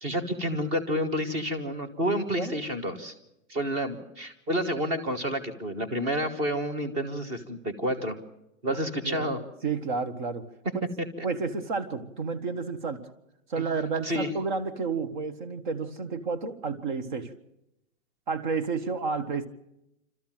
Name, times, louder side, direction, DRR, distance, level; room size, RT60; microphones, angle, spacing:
voice 1, 0.0-3.1 3.5-8.1 8.6-9.4 13.6-13.7 14.0-14.3, equal, 15° right, 8 dB, 1.3 m, -29 dB
voice 2, 9.0-10.5 10.7-10.8 11.2-13.1 13.5-17.3 18.3-19.5, right 4 dB, 35° right, 11 dB, 1.5 m, -31 dB
27.5 x 13.5 x 7.6 m, 0.88 s
hypercardioid pair, 165°, 40 cm